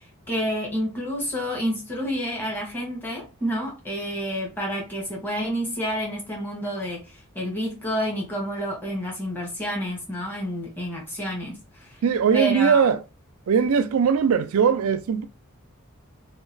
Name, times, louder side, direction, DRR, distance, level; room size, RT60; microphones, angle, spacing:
voice 1, 0.0-12.0 12.3-12.8, equal, 10° left, 1.0 m, -29 dB
voice 2, 12.0-13.0 13.5-15.3, right 6 dB, 80° right, 0.4 m, -20 dB
2.9 x 2.3 x 2.5 m
head